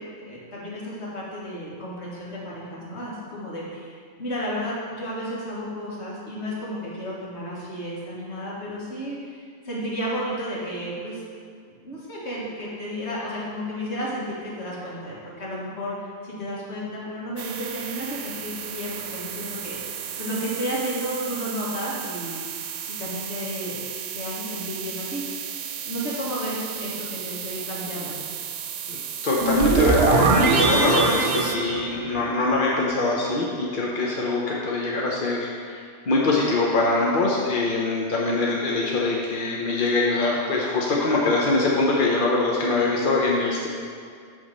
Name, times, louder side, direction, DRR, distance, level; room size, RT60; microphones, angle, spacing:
voice 1, 0.0-11.2 11.8-22.4 23.0-23.8 24.1-25.2 25.9-28.2, equal, 65° left, -6 dB, 2.0 m, -32 dB
sound 1, 17.4-31.6, right 8 dB, 90° right, 0.9 m, -34 dB
voice 2, 29.2-43.7, left 3 dB, 50° left, -3 dB, 0.9 m, -23 dB
sound 2, 29.4-32.7, right 3 dB, 60° right, 1.0 m, -20 dB
8.2 x 3.6 x 6.6 m, 2.2 s
omnidirectional pair, 1.2 m